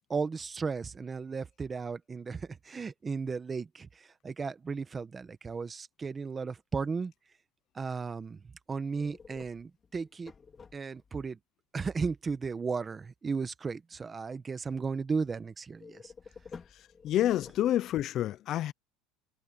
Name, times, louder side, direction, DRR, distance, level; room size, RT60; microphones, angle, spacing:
voice 1, 0.1-7.1 7.7-10.3 10.7-11.4 11.7-16.1, right 5 dB, 20° right, 1.1 m, -35 dB
sound 1, 8.9-11.2 15.8-18.1, left 5 dB, 20° left, 3.3 m, -51 dB
voice 2, 17.0-18.7, left 12 dB, 45° left, 0.5 m, -28 dB
cardioid pair, 145°, 0 cm